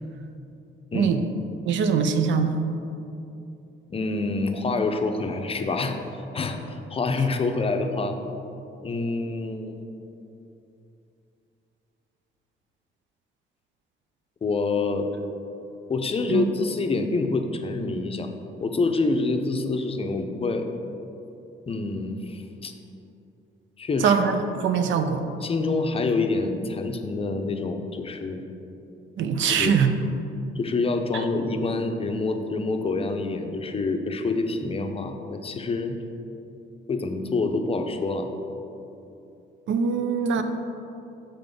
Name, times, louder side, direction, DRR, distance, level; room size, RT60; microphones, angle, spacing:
voice 1, 0.9-1.2 1.7-2.6 16.3-16.5 24.0-25.2 29.2-29.9 31.1-31.2 39.7-40.4, right 6 dB, 75° right, 8 dB, 0.5 m, -22 dB
voice 2, 3.9-6.0 6.3-8.2 8.8-9.8 14.4-15.1 15.9-18.3 18.6-20.7 21.7-22.7 23.8-24.2 25.4-28.4 29.4-29.8 30.6-36.0 36.9-38.3, left 3 dB, 30° left, 6 dB, 0.6 m, -26 dB
6.9 x 3.7 x 5.2 m, 2.8 s
cardioid pair, 90°, 20 cm